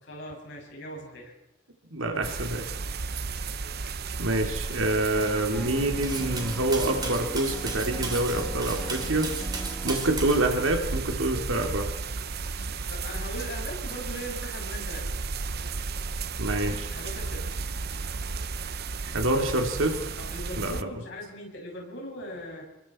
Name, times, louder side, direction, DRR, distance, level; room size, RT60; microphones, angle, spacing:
voice 1, 0.0-1.3 2.0-2.2 12.9-15.1 16.9-18.2 20.2-22.7, equal, 60° left, -1 dB, 6.7 m, -40 dB
voice 2, 1.9-2.7 4.2-9.3 9.8-11.9 16.4-16.9 19.0-20.1 20.6-20.9, right 1 dB, 70° right, 3 dB, 2.8 m, -27 dB
sound 1, 2.2-20.8, right 4 dB, 50° right, 0.8 m, -34 dB
sound 2, 5.1-10.1, equal, 5° left, 1.6 m, -41 dB
Cutlery silverware, 6.0-10.4, right 4 dB, 20° right, 2.9 m, -36 dB
26.5 x 22.0 x 4.4 m, 1.0 s
head